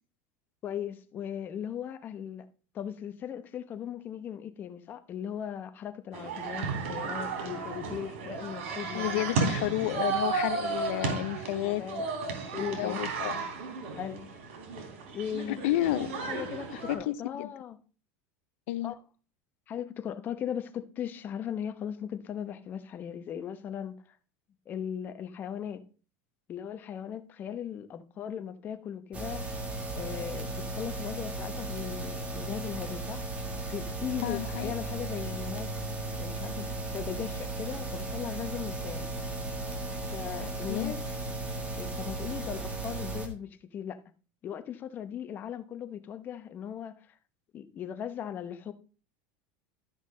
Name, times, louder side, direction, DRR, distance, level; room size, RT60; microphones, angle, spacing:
voice 1, 0.6-2.5 2.7-9.2 11.5-12.1 12.5-13.0 14.0-14.3 15.1-15.6 16.3-17.8 18.8-18.9 19.7-24.2 24.7-25.8 26.5-29.4 29.9-33.2 33.7-35.7 36.2-39.1 40.1-41.0 41.8-44.0 44.4-47.0 47.5-48.7, left 9 dB, 30° left, 0.9 m, -38 dB
sound 1, 6.1-16.9, right 5 dB, 90° right, 3.3 m, -34 dB
voice 2, 8.9-11.8 12.5-13.5 15.6-16.2 16.7-17.5 18.7-18.9 34.2-34.7 40.7-40.9, left 16 dB, 80° left, 0.6 m, -31 dB
sound 2, 29.1-43.3, right 2 dB, 20° right, 1.8 m, -36 dB
12.5 x 6.1 x 3.8 m
supercardioid pair, 150°, 7 cm